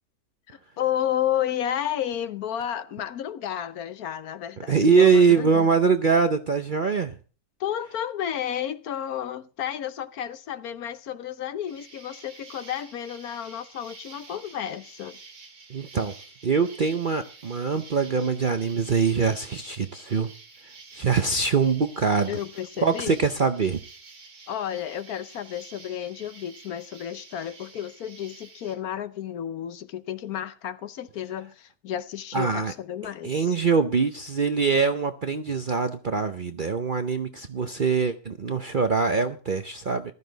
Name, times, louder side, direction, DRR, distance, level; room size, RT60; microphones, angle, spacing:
voice 1, 0.5-5.7 7.6-15.2 22.3-23.2 24.5-33.6, left 10 dB, 70° left, 1.3 m, -32 dB
voice 2, 4.7-7.1 15.7-16.1 16.4-20.3 20.9-22.3 22.8-23.8 32.3-32.7 33.2-40.1, right 5 dB, 45° right, 0.6 m, -23 dB
Insect, 11.7-28.8, right 4 dB, 70° right, 2.8 m, -49 dB
15.0 x 13.0 x 3.9 m
omnidirectional pair, 1.7 m